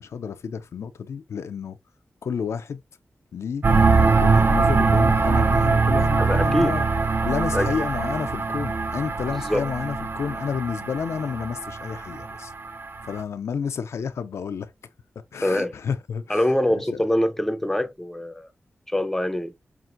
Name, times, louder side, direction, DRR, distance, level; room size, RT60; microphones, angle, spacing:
voice 1, 0.0-1.8 2.2-2.8 3.3-3.6 4.2-6.9 7.2-12.5 13.0-14.7 15.3-17.0, left 6 dB, 85° left, 0.4 m, -30 dB
sound 1, 3.6-13.2, right 4 dB, 50° right, 0.4 m, -22 dB
voice 2, 6.2-6.7 7.5-7.9 9.4-9.6 15.4-15.7 16.3-18.5 18.9-19.5, left 1 dB, 5° left, 0.5 m, -24 dB
5.8 x 2.5 x 2.4 m
wide cardioid pair, 75°, 5 cm